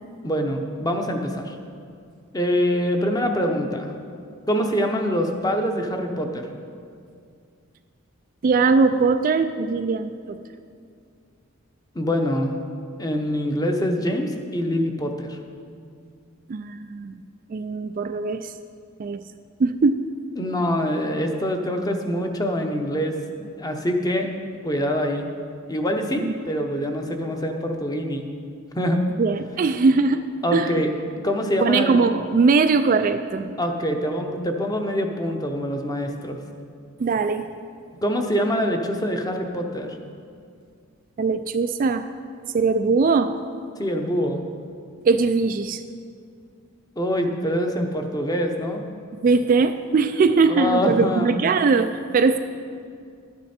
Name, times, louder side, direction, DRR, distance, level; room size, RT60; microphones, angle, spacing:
voice 1, 0.2-1.6 2.3-3.9 4.5-6.5 11.9-12.6 13.0-15.4 20.4-23.1 23.6-24.3 24.6-25.3 25.7-28.3 28.7-29.0 30.4-30.9 31.2-32.0 33.6-36.4 38.0-40.0 43.8-44.4 47.0-48.8 50.5-51.4, equal, 15° left, 4 dB, 0.8 m, -24 dB
voice 2, 8.4-10.4 16.5-17.2 17.5-18.5 19.0-19.2 19.6-20.1 26.2-26.3 29.2-30.2 30.5-30.8 31.6-33.6 37.0-37.5 41.2-42.1 42.5-43.4 45.0-45.8 49.2-52.4, right 4 dB, 40° right, 9 dB, 0.3 m, -20 dB
12.0 x 9.8 x 4.3 m, 2.3 s
head